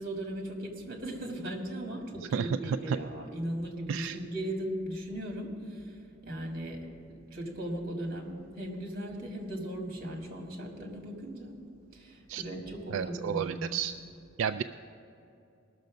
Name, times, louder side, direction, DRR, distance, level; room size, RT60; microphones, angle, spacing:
voice 1, 0.0-11.6 11.9-13.7, right 1 dB, 50° right, 1 dB, 1.9 m, -38 dB
voice 2, 2.3-3.0 3.9-4.2 12.3-12.4 12.9-13.9 14.4-14.6, right 7 dB, 85° right, 9 dB, 0.3 m, -31 dB
19.5 x 6.6 x 5.1 m, 2.6 s
head